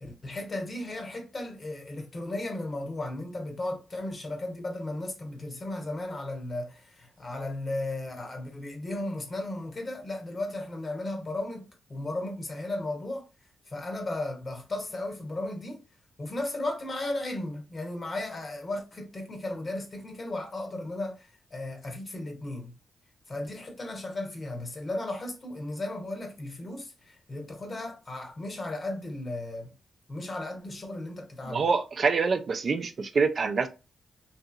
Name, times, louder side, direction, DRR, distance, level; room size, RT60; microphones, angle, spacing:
voice 1, 0.0-13.2 13.7-15.8 16.2-22.8 23.3-29.7 30.1-31.7, left 2 dB, 40° left, 1.0 m, -35 dB
voice 2, 31.5-33.7, right 4 dB, 55° right, 0.4 m, -26 dB
2.8 x 2.7 x 2.3 m
cardioid pair, 65°, 0 cm